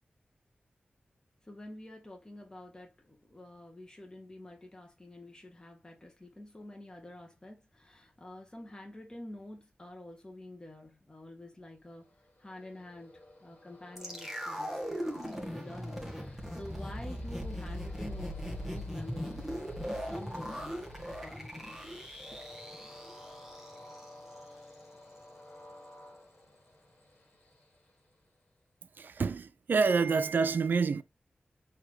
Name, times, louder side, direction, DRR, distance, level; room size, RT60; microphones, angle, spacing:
voice 1, 1.4-19.4 19.8-21.8, left 1 dB, 20° left, 1.1 m, -48 dB
Train, 11.9-28.6, left 1 dB, 55° left, 1.7 m, -55 dB
sound 1, 14.0-24.1 24.4-24.5, equal, 5° right, 1.4 m, -39 dB
voice 2, 29.0-31.0, right 5 dB, 65° right, 0.4 m, -27 dB
4.1 x 2.8 x 3.0 m
wide cardioid pair, 70°, 3 cm